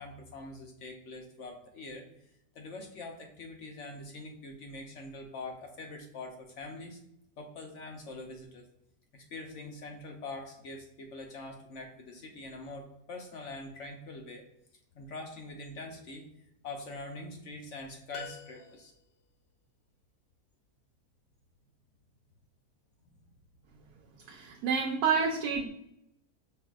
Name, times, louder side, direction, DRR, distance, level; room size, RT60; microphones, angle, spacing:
voice 1, 0.0-2.1 2.5-7.0 7.4-8.7 9.1-14.4 14.9-16.3 16.6-18.9 23.0-23.2, left 2 dB, 60° left, 3 dB, 0.8 m, -44 dB
sound 1, 18.1-19.3, left 7 dB, 90° left, 1.3 m, -47 dB
voice 2, 24.3-25.7, right 5 dB, 75° right, -1 dB, 1.1 m, -29 dB
5.7 x 2.6 x 2.3 m, 0.79 s
omnidirectional pair, 1.8 m